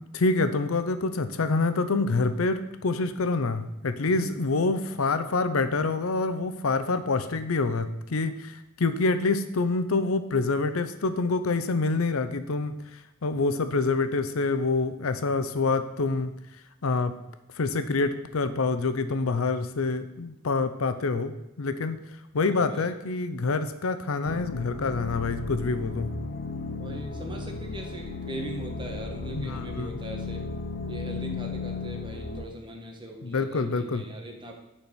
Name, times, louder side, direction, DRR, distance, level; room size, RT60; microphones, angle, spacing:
voice 1, 0.1-16.3 16.8-17.1 17.6-22.0 22.3-26.1 29.3-29.9 33.2-34.0, left 3 dB, 90° left, 10 dB, 0.6 m, -26 dB
sound 1, 24.2-32.4, left 4 dB, 45° left, 0.6 m, -35 dB
voice 2, 26.8-30.4 30.9-34.5, right 1 dB, 25° right, 1 dB, 1.3 m, -40 dB
8.5 x 4.3 x 6.2 m, 0.91 s
head